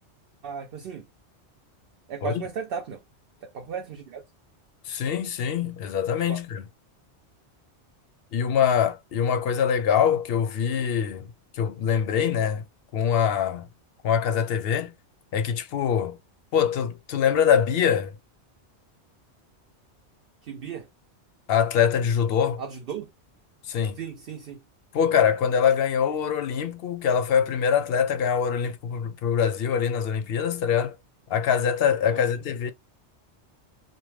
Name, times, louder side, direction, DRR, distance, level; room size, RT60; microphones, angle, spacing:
voice 1, 0.4-1.1 2.1-3.0 3.5-4.2 6.3-6.4 20.5-20.9 22.6-23.1 24.0-24.6 32.1-32.2, right 6 dB, 60° right, 0.7 m, -35 dB
voice 2, 4.9-6.6 8.3-11.3 11.5-12.6 12.9-13.7 14.0-14.9 15.3-16.2 16.5-18.1 21.5-22.6 23.7-24.0 24.9-31.0 31.3-32.7, left 8 dB, 65° left, 0.7 m, -24 dB
2.6 x 2.1 x 3.1 m
omnidirectional pair, 1.2 m